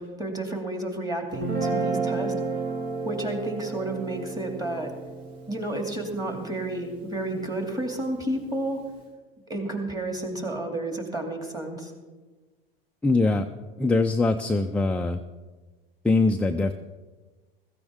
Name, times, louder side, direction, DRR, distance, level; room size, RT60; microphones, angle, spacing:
voice 1, 0.0-2.3 3.0-4.9 5.5-8.8 9.5-11.9, right 1 dB, 10° right, 3 dB, 2.5 m, -31 dB
Guitar, 1.3-7.6, right 4 dB, 50° right, 2.9 m, -32 dB
voice 2, 13.0-13.5 13.8-15.2 16.0-16.7, left 3 dB, 5° left, 4 dB, 0.4 m, -22 dB
15.5 x 14.5 x 3.6 m, 1.3 s
hypercardioid pair, 100°, 30 cm